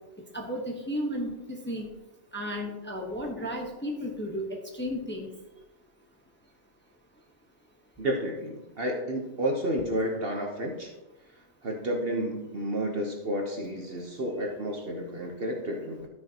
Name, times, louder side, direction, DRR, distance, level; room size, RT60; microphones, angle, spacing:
voice 1, 0.3-1.9 2.3-5.3, equal, 10° left, -1 dB, 1.0 m, -33 dB
voice 2, 8.0-10.9 11.6-16.1, equal, 45° right, 1 dB, 1.1 m, -31 dB
13.0 x 6.2 x 2.9 m, 1.0 s
omnidirectional pair, 1.4 m